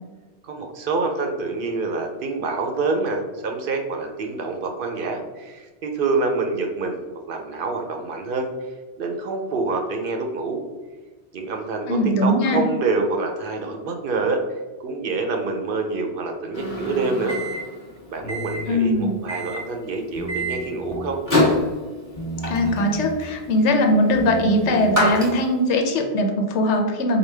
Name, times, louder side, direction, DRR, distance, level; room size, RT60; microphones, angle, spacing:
voice 1, 0.4-8.5 9.0-10.6 11.3-14.4 14.8-17.4 18.1-21.2, right 3 dB, 60° right, 3 dB, 0.7 m, -26 dB
voice 2, 11.9-12.6 18.7-19.2 22.5-27.2, left 1 dB, 85° left, 3 dB, 1.0 m, -20 dB
Microwave oven, 16.5-25.8, left 1 dB, 15° left, 1.3 m, -27 dB
sound 1, 18.2-19.1 20.1-21.2 22.2-23.1 24.1-25.1, right 1 dB, 40° left, 1.1 m, -34 dB
4.9 x 2.2 x 3.2 m, 1.3 s
omnidirectional pair, 1.1 m